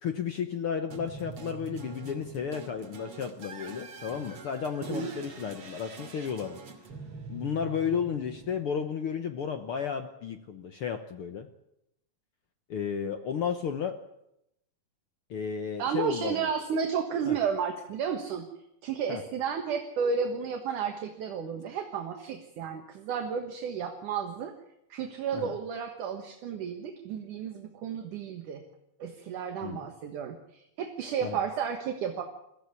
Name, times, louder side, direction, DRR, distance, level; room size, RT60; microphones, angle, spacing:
voice 1, 0.0-6.6 7.3-11.5 12.7-14.0 15.3-16.5 17.3-17.4 19.1-19.2 25.3-25.5 29.6-29.8 31.2-31.4, left 7 dB, 65° left, 8 dB, 1.3 m, -33 dB
sound 1, 0.9-9.1, right 4 dB, 45° right, 3.3 m, -44 dB
voice 2, 15.8-18.5 18.8-24.5 24.9-28.6 29.0-32.2, right 6 dB, 65° right, 5 dB, 2.8 m, -32 dB
23.0 x 15.0 x 9.7 m, 0.82 s
omnidirectional pair, 4.0 m